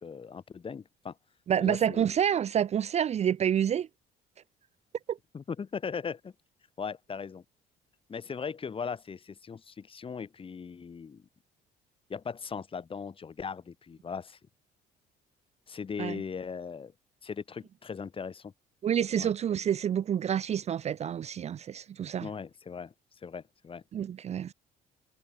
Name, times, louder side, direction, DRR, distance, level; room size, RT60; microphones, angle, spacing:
voice 1, 0.0-1.1 1.6-2.0 5.3-6.3 6.8-7.4 8.1-11.2 12.1-14.4 15.7-16.9 17.2-18.5 19.1-19.3 22.2-22.9 23.2-23.8, left 6 dB, 30° left, 2.7 m, -38 dB
voice 2, 1.5-3.9 5.1-5.2 16.0-16.2 18.8-22.3 23.9-24.5, right 9 dB, 40° right, 0.5 m, -28 dB
cardioid pair, 110°, 17 cm